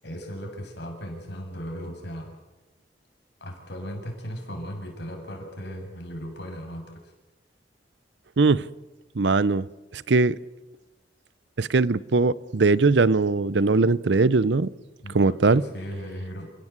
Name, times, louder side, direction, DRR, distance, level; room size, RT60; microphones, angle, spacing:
voice 1, 0.0-2.3 3.4-6.8 15.0-16.5, equal, 65° left, 3 dB, 6.9 m, -36 dB
voice 2, 8.4-8.7 9.2-9.6 9.9-10.4 11.6-14.7 15.1-15.6, right 3 dB, 75° right, 20 dB, 0.7 m, -20 dB
29.0 x 17.0 x 8.2 m, 1.1 s
head